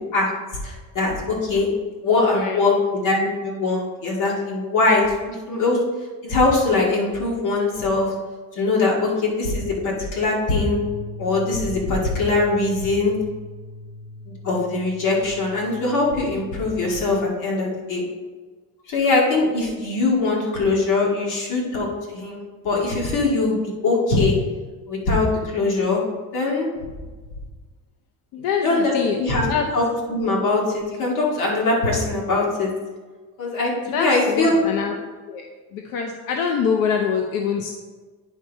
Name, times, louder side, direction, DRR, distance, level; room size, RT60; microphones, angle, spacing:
voice 1, 0.6-1.7 2.0-2.7 3.0-5.8 6.2-8.1 8.5-10.8 11.2-13.1 14.3-18.0 18.9-23.6 23.8-24.4 24.9-26.0 26.3-26.7 28.6-28.9 29.2-29.5 29.7-32.7 33.4-34.6, left 3 dB, 60° left, -2 dB, 2.3 m, -22 dB
voice 2, 2.2-2.6 28.3-29.2 29.5-29.7 33.9-34.9 35.3-35.5 35.7-37.7, left 6 dB, 90° left, 3 dB, 0.8 m, -24 dB
sound 1, 10.7-17.0, left 2 dB, 75° right, 0.8 m, -39 dB
10.0 x 4.6 x 4.2 m, 1.4 s
cardioid pair, 170°, 34 cm